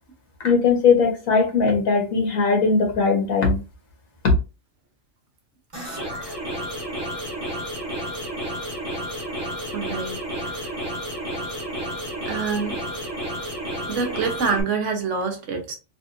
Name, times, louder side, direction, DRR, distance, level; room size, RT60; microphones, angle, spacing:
voice 1, 0.4-3.6, left 5 dB, 80° left, 1.7 m, -19 dB
sound 1, 5.7-14.6, equal, 20° right, 1.1 m, -31 dB
voice 2, 9.7-10.2 10.4-10.7 12.3-12.8 13.9-15.8, right 5 dB, 65° right, 1.2 m, -26 dB
3.5 x 3.3 x 2.5 m
omnidirectional pair, 1.4 m